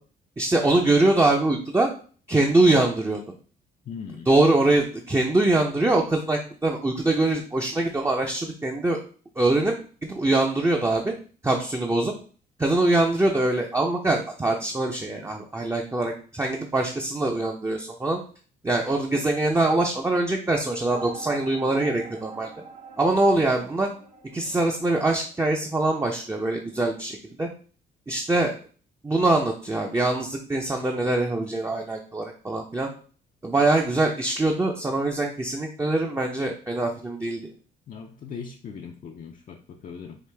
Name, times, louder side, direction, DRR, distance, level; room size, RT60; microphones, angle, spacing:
voice 1, 0.4-1.9 2.3-3.2 4.2-9.0 9.4-9.7 10.0-11.1 11.4-12.1 12.6-18.2 18.6-22.5 23.0-23.9 24.3-27.5 28.1-28.5 29.0-32.9 33.4-37.4, right 2 dB, 15° right, 1 dB, 0.5 m, -23 dB
voice 2, 3.9-4.3 37.9-40.2, left 6 dB, 40° left, 2 dB, 0.4 m, -39 dB
sound 1, 20.9-26.5, right 3 dB, 35° right, 1.0 m, -46 dB
4.8 x 2.4 x 3.3 m, 0.41 s
cardioid pair, 90°, 20 cm